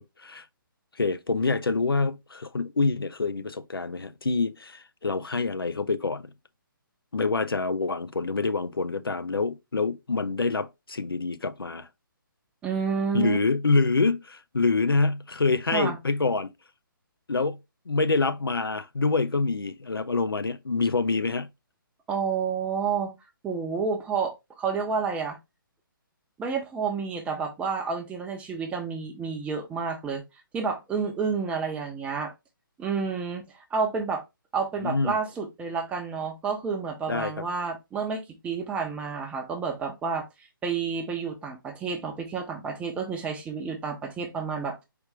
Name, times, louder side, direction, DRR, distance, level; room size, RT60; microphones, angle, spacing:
voice 1, 1.0-6.3 7.1-11.9 13.1-16.5 17.3-17.6 17.9-21.5 34.8-35.2 37.1-37.3, left 3 dB, 90° left, 0.5 m, -26 dB
voice 2, 12.6-13.4 15.7-16.0 22.1-23.1 23.4-25.4 26.4-30.2 30.5-32.3 32.8-34.2 34.5-44.8, right 5 dB, 10° right, 0.8 m, -30 dB
4.7 x 3.4 x 3.2 m
figure-of-eight pair, 140°, 12 cm